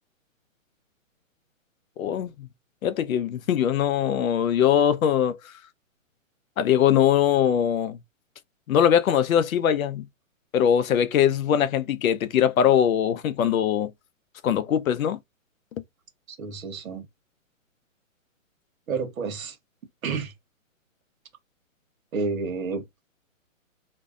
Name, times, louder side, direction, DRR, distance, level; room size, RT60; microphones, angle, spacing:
voice 1, 2.0-2.5 2.8-5.4 6.6-8.0 8.7-10.0 10.5-13.9 14.4-15.2, left 9 dB, 85° left, 0.6 m, -21 dB
voice 2, 16.3-17.1 18.9-19.6 20.0-20.3 22.1-22.8, right 4 dB, 80° right, 1.1 m, -30 dB
2.6 x 2.1 x 2.3 m
hypercardioid pair, 160°, 40 cm